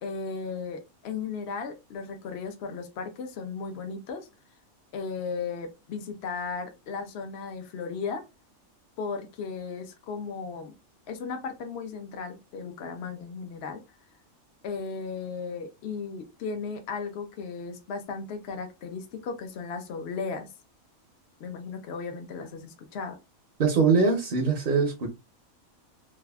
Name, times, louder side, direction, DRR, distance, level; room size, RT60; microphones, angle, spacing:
voice 1, 0.0-4.3 4.9-8.2 9.0-10.7 11.1-13.8 14.6-20.5 21.4-23.2, left 5 dB, 60° left, 0.7 m, -35 dB
voice 2, 23.6-25.1, right 4 dB, 55° right, 0.5 m, -22 dB
3.3 x 2.3 x 2.3 m
omnidirectional pair, 1.5 m